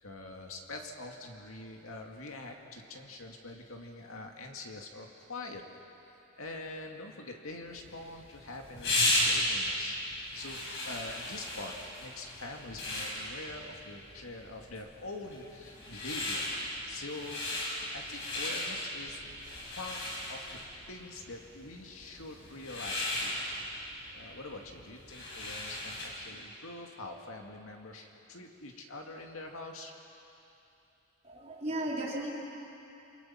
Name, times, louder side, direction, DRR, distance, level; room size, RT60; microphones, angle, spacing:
voice 1, 0.0-5.6 6.4-9.9 10.3-16.4 16.9-19.2 19.7-20.0 20.3-20.6 20.9-23.4 24.1-29.9, left 2 dB, 75° left, 2 dB, 2.3 m, -44 dB
sound 1, 7.8-26.3, left 1 dB, 60° left, 5.3 m, -36 dB
voice 2, 31.2-32.3, right 1 dB, 30° right, -5 dB, 4.2 m, -35 dB
28.5 x 26.0 x 5.8 m, 2.9 s
head